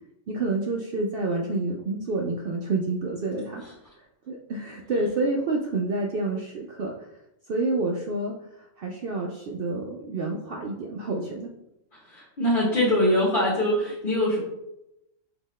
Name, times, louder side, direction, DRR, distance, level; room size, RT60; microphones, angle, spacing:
voice 1, 0.3-3.6 4.3-6.9 7.5-11.5, right 2 dB, 65° right, 0 dB, 0.6 m, -28 dB
voice 2, 12.1-14.4, left 1 dB, 45° left, -7 dB, 1.1 m, -23 dB
5.5 x 2.8 x 3.1 m, 0.87 s
omnidirectional pair, 1.4 m